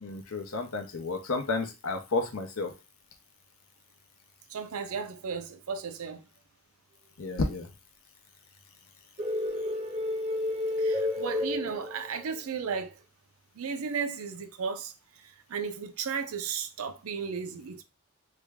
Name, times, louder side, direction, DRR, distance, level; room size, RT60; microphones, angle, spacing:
voice 1, 0.0-2.7 7.2-7.7, left 3 dB, 75° left, 0.8 m, -31 dB
voice 2, 4.5-6.2 10.8-12.9 13.6-14.9 15.5-17.8, right 6 dB, 85° right, 0.5 m, -34 dB
sound 1, 9.2-12.4, left 2 dB, 30° right, 0.9 m, -30 dB
3.4 x 2.2 x 3.5 m
head